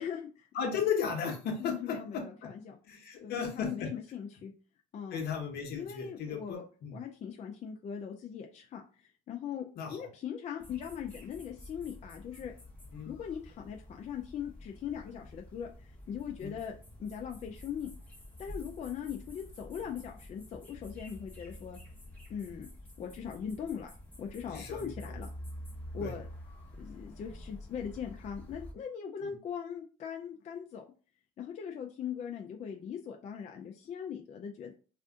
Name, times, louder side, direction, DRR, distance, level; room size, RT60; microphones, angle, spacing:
voice 1, 0.0-0.5 1.6-2.8 3.2-4.5 4.9-5.2 5.7-6.6 6.9-9.6 9.9-12.5 13.1-16.7 17.0-17.9 18.4-21.8 22.3-22.7 23.0-23.9 24.2-25.3 25.9-26.3 26.8-30.8 31.4-34.7, left 8 dB, 45° left, 2 dB, 0.4 m, -40 dB
voice 2, 0.5-2.5 2.8-3.9 5.1-7.0 9.8-10.1 12.9-13.1 16.4-16.5 24.5-25.1 26.0-26.1 29.2-29.4, left 6 dB, 70° left, 3 dB, 1.0 m, -35 dB
sound 1, 10.6-28.7, left 1 dB, 10° left, 1.2 m, -48 dB
2.5 x 2.4 x 3.6 m, 0.37 s
cardioid pair, 110°, 17 cm